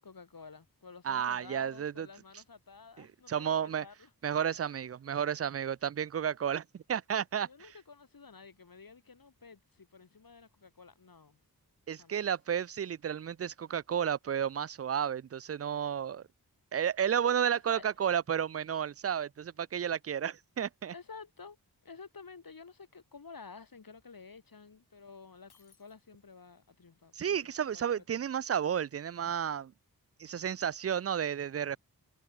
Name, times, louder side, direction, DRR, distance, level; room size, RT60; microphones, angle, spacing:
voice 1, 0.0-4.1 7.5-11.4 12.0-12.2 17.5-17.8 20.9-21.6 21.8-28.2, left 5 dB, 65° left, 3.4 m, -52 dB
voice 2, 1.0-2.1 3.0-3.9 4.2-7.5 11.9-16.2 16.7-20.9 27.1-29.7 30.2-31.8, right 8 dB, 40° right, 0.4 m, -32 dB
Shatter, 25.5-26.5, left 6 dB, 80° left, 2.3 m, -67 dB
wide cardioid pair, 70°, 38 cm